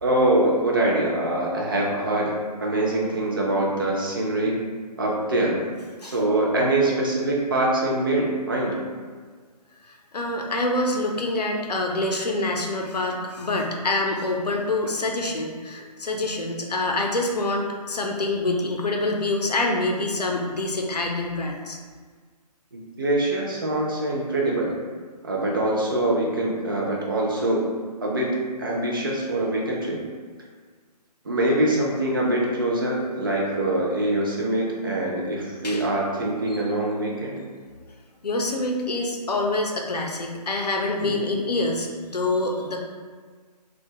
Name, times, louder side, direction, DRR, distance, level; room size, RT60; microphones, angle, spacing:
voice 1, 0.0-2.4 2.6-4.6 5.0-5.6 6.0-8.8 22.7-24.7 25.2-27.6 28.0-30.0 31.3-37.4 41.0-41.1, right 1 dB, 30° right, -3 dB, 0.4 m, -24 dB
voice 2, 9.9-21.8 35.6-35.9 38.2-42.8, left 2 dB, 75° left, 1 dB, 0.5 m, -26 dB
2.5 x 2.2 x 2.8 m, 1.5 s
figure-of-eight pair, 140°, 21 cm